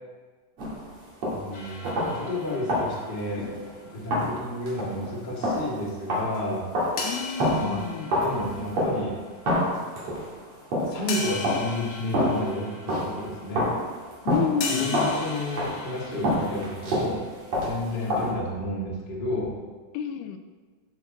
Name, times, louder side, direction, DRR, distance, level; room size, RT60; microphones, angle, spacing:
sound 1, 0.6-1.5 1.8-2.4 2.7-3.7 4.1-9.2 9.4-11.1 11.4-13.3 13.5-18.3, equal, 45° right, 3.3 m, -28 dB
voice 1, 1.3-3.5 3.9-6.6 7.6-7.8 8.1-9.2 10.9-13.7 14.7-17.2 17.6-19.5, left 1 dB, 35° left, -4 dB, 0.8 m, -31 dB
sound 2, 1.5-4.2 7.0-9.4 10.1-10.2 11.1-13.9 14.6-17.6, left 3 dB, 60° left, 2.0 m, -38 dB
voice 2, 7.0-8.1 14.3-15.1 17.9-18.4 19.9-20.4, left 8 dB, 85° left, 8 dB, 2.6 m, -30 dB
13.5 x 5.9 x 3.9 m, 1.4 s
omnidirectional pair, 4.5 m